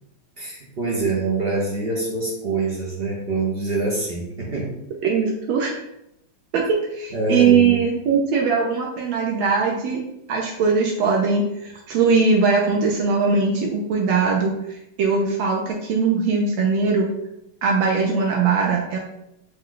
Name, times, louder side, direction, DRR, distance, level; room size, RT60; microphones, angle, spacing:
voice 1, 0.4-4.7 7.1-7.8, right 3 dB, 60° right, -4 dB, 0.6 m, -25 dB
voice 2, 5.0-5.8 6.5-10.0 10.3-14.5 15.0-17.1 17.6-19.0, right 5 dB, 80° right, -1 dB, 1.4 m, -20 dB
5.3 x 2.3 x 3.8 m, 0.83 s
omnidirectional pair, 2.2 m